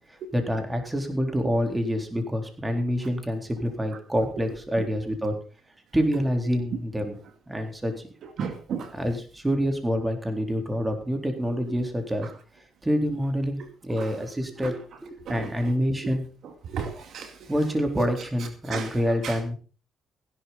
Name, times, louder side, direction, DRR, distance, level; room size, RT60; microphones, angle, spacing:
voice 1, 0.1-5.4 5.9-7.2 7.5-8.1 8.9-12.3 12.8-16.3 17.5-19.6, equal, 15° right, 3.9 m, -27 dB
voice 2, 8.4-8.9 13.9-14.1 14.6-14.7 15.3-15.5 16.7-17.5 18.7-19.0 19.2-19.4, right 6 dB, 70° right, 2.3 m, -33 dB
16.0 x 11.5 x 4.1 m
cardioid pair, 90°, 0 cm